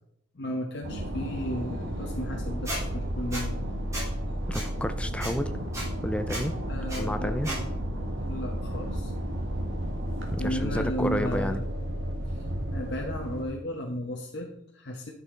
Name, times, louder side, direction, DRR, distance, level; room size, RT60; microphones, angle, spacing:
voice 1, 0.3-3.6 6.7-7.7 8.2-9.1 10.4-11.6 12.3-12.4 12.7-15.1, equal, 60° left, 0 dB, 1.0 m, -34 dB
sound 1, 0.8-13.4, equal, 75° right, 1.7 m, -32 dB
Squeak, 2.6-2.8 3.3-3.4 3.9-4.1 4.5-4.6 5.2-5.3 5.7-5.8 6.3-6.4 6.9-7.0 7.4-7.6, right 1 dB, 15° right, 3.4 m, -33 dB
voice 2, 4.5-5.5 6.0-6.6 6.9-7.5 10.3-11.6, equal, 5° left, 9 dB, 0.5 m, -31 dB
11.0 x 6.6 x 3.8 m, 0.77 s
head